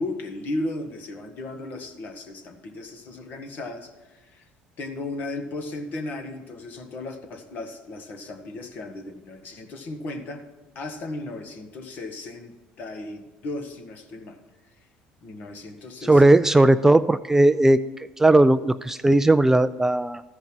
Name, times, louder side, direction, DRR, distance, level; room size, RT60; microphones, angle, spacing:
voice 1, 0.0-4.4 4.8-10.4 10.7-14.4 15.2-16.4, left 2 dB, 55° left, 5 dB, 1.5 m, -35 dB
voice 2, 16.1-17.8 18.2-20.2, right 2 dB, 10° right, 13 dB, 0.3 m, -17 dB
13.5 x 5.3 x 6.0 m, 1.2 s
supercardioid pair, 80°, 4 cm